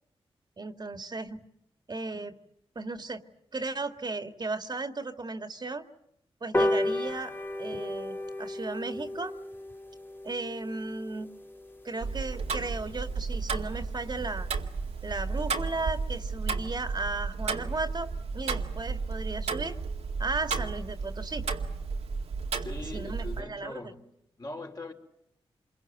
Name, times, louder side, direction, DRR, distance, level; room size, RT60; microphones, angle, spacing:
voice 1, 0.6-1.4 1.9-2.4 2.8-3.2 3.5-5.8 6.4-9.3 10.2-11.3 11.8-14.5 15.0-19.8 20.2-21.4 22.9-23.9, right 3 dB, 45° right, 2.0 m, -35 dB
sound 1, 6.5-13.3 13.7-13.8 14.1-14.2 14.5-14.6 14.9-15.0 15.3-15.6 16.0-16.1, left 1 dB, 20° left, 2.1 m, -34 dB
Tick-tock, 12.0-23.4, right 4 dB, 85° right, 2.1 m, -33 dB
voice 2, 22.6-24.1 24.4-24.9, left 2 dB, 40° left, 4.4 m, -40 dB
26.5 x 23.0 x 9.2 m
cardioid pair, 60°, 10 cm